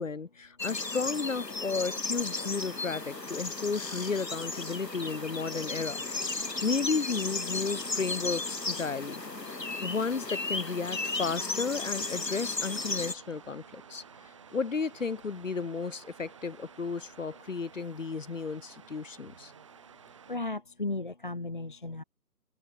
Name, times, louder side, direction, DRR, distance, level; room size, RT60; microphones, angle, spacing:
voice 1, 0.0-6.0 6.3-9.2 9.8-14.0 14.5-19.5, left 4 dB, 55° left, 0.6 m, -33 dB
sound 1, 0.6-13.1, left 3 dB, 90° left, 1.9 m, -35 dB
Waves surf, 2.3-20.4, right 7 dB, 20° right, 2.6 m, -53 dB
voice 2, 20.3-22.0, left 2 dB, 30° left, 1.1 m, -35 dB
open air
figure-of-eight pair, 160°, 48 cm